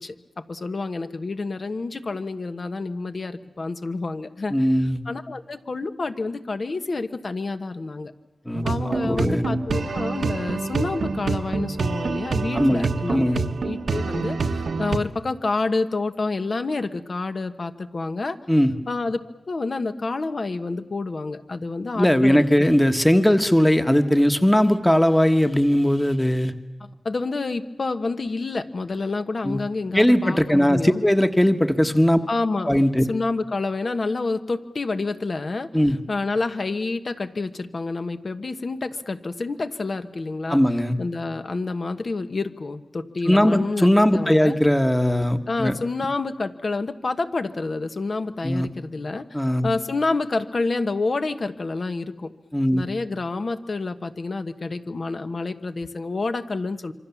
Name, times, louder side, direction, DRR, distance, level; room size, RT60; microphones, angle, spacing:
voice 1, 0.0-4.7 5.0-8.1 8.6-13.3 13.6-18.4 18.9-19.2 19.5-22.7 26.8-31.0 32.3-40.6 41.0-43.9 44.1-44.6 45.5-52.3 52.7-56.9, left 3 dB, 55° left, 8 dB, 1.3 m, -28 dB
voice 2, 4.5-5.0 8.5-9.5 12.5-13.4 18.5-18.7 21.9-26.5 29.4-29.6 29.9-32.2 32.7-33.0 35.7-36.0 40.5-41.0 43.3-45.8 48.4-48.7 49.3-49.7 52.5-52.8, equal, 10° left, 8 dB, 1.3 m, -19 dB
sound 1, 8.5-15.0, right 4 dB, 80° right, 1.2 m, -26 dB
26.5 x 24.5 x 7.2 m, 1.0 s
wide cardioid pair, 80°, 0 cm